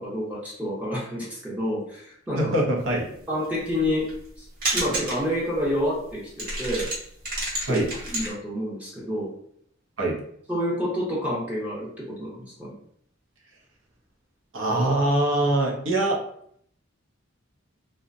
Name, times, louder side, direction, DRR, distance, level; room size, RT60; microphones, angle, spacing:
voice 1, 0.0-2.5 3.3-4.1 4.4-4.5 4.7-6.9 7.7-7.8 8.1-9.3 10.5-12.7, equal, 10° right, -6 dB, 0.6 m, -28 dB
voice 2, 2.4-3.1 7.7-7.9 10.0-10.2 14.5-16.2, right 1 dB, 70° right, -1 dB, 0.6 m, -23 dB
sound 1, 3.4-4.4 4.6-5.3 5.6-5.7 6.1-6.2 6.4-8.3, right 1 dB, 45° right, 0.9 m, -30 dB
2.6 x 2.1 x 2.4 m, 0.66 s
head